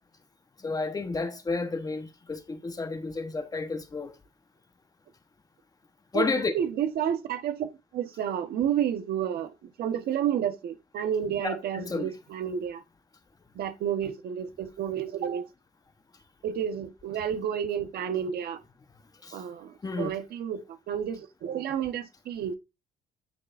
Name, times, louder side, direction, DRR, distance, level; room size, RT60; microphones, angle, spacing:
voice 1, 0.6-4.1 6.1-6.5 11.4-12.1 19.2-19.4 19.8-20.1, left 3 dB, 20° left, 1.1 m, -31 dB
voice 2, 6.5-7.7 7.9-12.8 13.5-15.5 16.4-18.6 19.3-20.6 20.9-22.5, right 9 dB, 65° right, 1.3 m, -30 dB
10.5 x 6.8 x 2.6 m
cardioid pair, 110°, 17 cm